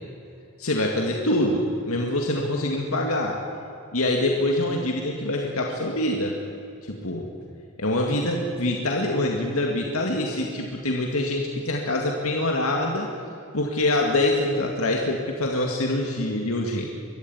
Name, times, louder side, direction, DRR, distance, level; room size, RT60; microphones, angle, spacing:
voice 1, 0.6-3.4 3.9-6.4 6.8-7.3 7.8-13.1 13.5-16.9, left 1 dB, 85° left, 0 dB, 2.1 m, -25 dB
23.0 x 13.5 x 9.7 m, 2.7 s
head